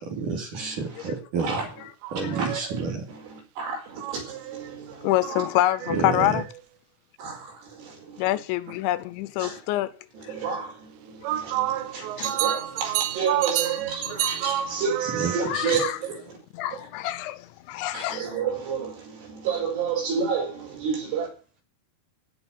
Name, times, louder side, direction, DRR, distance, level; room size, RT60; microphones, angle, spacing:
voice 1, 0.0-1.7 2.1-3.0 5.9-6.4 15.1-15.7, right 5 dB, 45° right, 4.6 m, -30 dB
voice 2, 0.6-1.1 1.4-1.7 2.4-2.6 3.1-5.1 7.2-8.2 9.4-9.6 10.2-16.4 17.9-21.3, right 5 dB, 65° right, 6.9 m, -31 dB
sound 1, 2.0-2.9 4.0-6.6 11.2-15.7, right 13 dB, 85° right, 3.2 m, -30 dB
voice 3, 5.0-6.5 8.2-9.9 11.7-12.4 14.0-14.4 15.4-16.0 16.5-18.2, left 15 dB, 90° left, 3.2 m, -27 dB
15.5 x 6.4 x 9.9 m
omnidirectional pair, 5.1 m